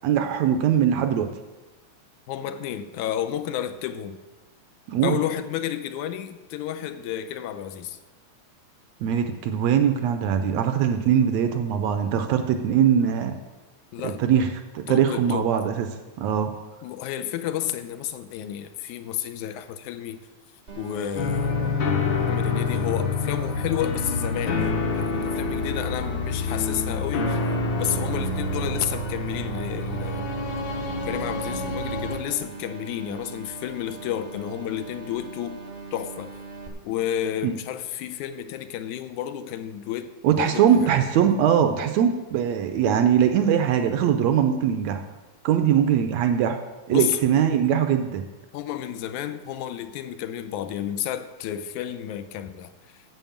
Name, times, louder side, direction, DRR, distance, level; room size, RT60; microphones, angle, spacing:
voice 1, 0.0-1.3 4.9-5.2 9.0-13.4 14.0-15.9 16.2-16.6 37.4-37.5 40.2-45.0 45.4-46.6 46.9-48.2, right 8 dB, 75° right, 8 dB, 1.7 m, -21 dB
voice 2, 2.3-4.2 5.0-8.0 13.9-14.2 14.9-15.5 16.8-20.2 20.8-24.7 24.9-27.4 27.8-30.3 31.1-35.6 35.9-36.4 36.8-40.7 46.9-47.2 48.5-53.0, left 11 dB, 85° left, 10 dB, 2.1 m, -31 dB
sound 1, 20.7-36.7, right 4 dB, 55° right, 0.6 m, -41 dB
sound 2, 21.2-32.2, left 3 dB, 55° left, 1.4 m, -27 dB
9.1 x 7.8 x 7.2 m, 1.2 s
omnidirectional pair, 3.5 m